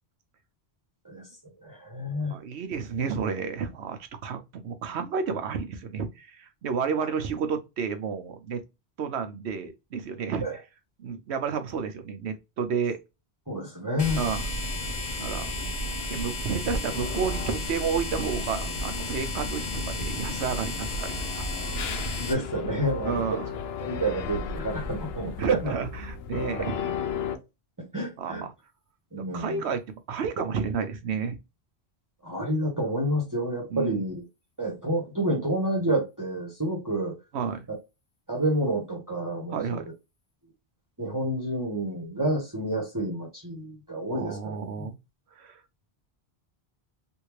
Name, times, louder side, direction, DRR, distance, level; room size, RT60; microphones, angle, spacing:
voice 1, 1.6-2.3 10.4-10.5 13.5-14.2 22.2-23.4 23.8-25.7 27.9-28.4 29.1-29.6 32.2-34.2 34.6-37.1 38.3-39.8 41.0-44.9, right 1 dB, 20° right, 1.1 m, -29 dB
voice 2, 2.3-8.6 9.0-10.4 11.0-13.0 14.1-14.5 15.2-15.5 16.1-21.5 23.0-23.5 25.4-26.7 28.2-28.5 29.3-29.8 30.1-31.4 33.7-34.0 37.3-37.7 39.5-39.9 44.1-45.0 45.4-45.6, right 6 dB, 80° right, 1.0 m, -31 dB
sound 1, 14.0-22.3, left 1 dB, 45° left, 0.8 m, -32 dB
sound 2, 16.9-27.4, left 6 dB, 70° left, 0.8 m, -36 dB
3.5 x 2.7 x 3.1 m
omnidirectional pair, 1.1 m